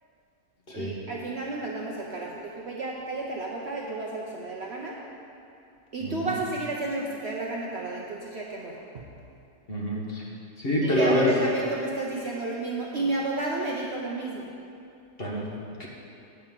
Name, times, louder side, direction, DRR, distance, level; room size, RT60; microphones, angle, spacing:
voice 1, 0.7-5.0 5.9-9.1 10.8-14.5, right 2 dB, 50° right, -2 dB, 0.9 m, -32 dB
voice 2, 6.0-6.3 9.7-10.2 10.6-11.3 15.2-15.5 15.8-15.9, left 1 dB, 40° left, -3 dB, 1.4 m, -26 dB
8.7 x 5.7 x 7.4 m, 2.6 s
omnidirectional pair, 1.7 m